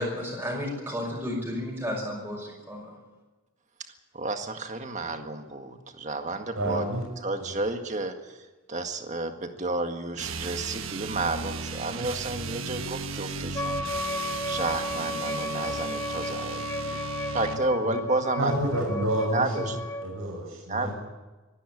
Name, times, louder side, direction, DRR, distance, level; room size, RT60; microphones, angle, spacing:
voice 1, 0.0-2.9, left 1 dB, 10° right, -2 dB, 6.0 m, -32 dB
voice 2, 4.1-6.8 7.2-8.4 8.7-13.8 14.5-17.0 17.3-18.6 19.3-19.8 20.7-20.9, right 2 dB, 35° right, 5 dB, 1.8 m, -31 dB
voice 3, 6.5-7.0 7.4-7.5 17.8-17.9 18.4-19.7 20.0-20.9, right 1 dB, 90° right, -1 dB, 6.8 m, -29 dB
sound 1, 10.1-17.7, right 5 dB, 75° right, 1.3 m, -35 dB
Wind instrument woodwind instrument, 13.5-20.1, left 2 dB, 15° left, 1.2 m, -34 dB
25.0 x 12.0 x 9.9 m, 1.2 s
head